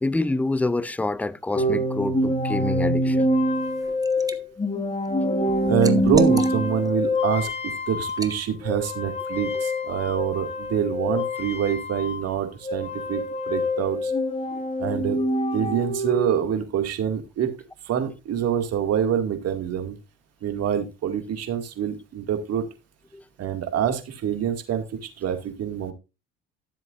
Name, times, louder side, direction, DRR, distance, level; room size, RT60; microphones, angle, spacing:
voice 1, 0.0-3.3 5.2-5.6 14.5-14.6 23.1-23.2, left 2 dB, 5° left, 0.4 m, -27 dB
sound 1, 1.5-12.4 12.6-16.6, left 1 dB, 20° left, 1.4 m, -25 dB
Liquid, 3.6-4.4 4.8-6.9 7.3-7.5 8.1-8.4, right 3 dB, 10° right, 1.0 m, -35 dB
voice 2, 5.6-14.1 14.8-15.2 15.5-17.5 17.8-20.0 20.4-22.7 23.4-24.8 25.2-25.9, right 8 dB, 55° right, 2.2 m, -26 dB
13.5 x 7.5 x 2.5 m
supercardioid pair, 70°, 29 cm